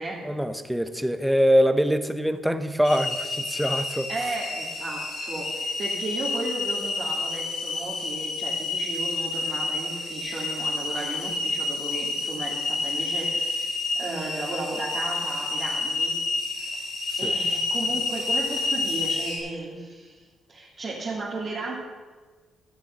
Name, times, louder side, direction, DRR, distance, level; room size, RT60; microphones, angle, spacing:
voice 1, 0.2-4.1 17.1-17.3, equal, 5° right, 10 dB, 0.8 m, -23 dB
tea kettle whistling, 2.8-19.4, left 3 dB, 85° left, 3.2 m, -29 dB
voice 2, 4.1-16.2 16.5-16.9 17.2-20.2 20.5-21.8, right 2 dB, 40° right, -5 dB, 2.2 m, -35 dB
12.0 x 6.8 x 6.4 m, 1.4 s
cardioid pair, 90°, 0 cm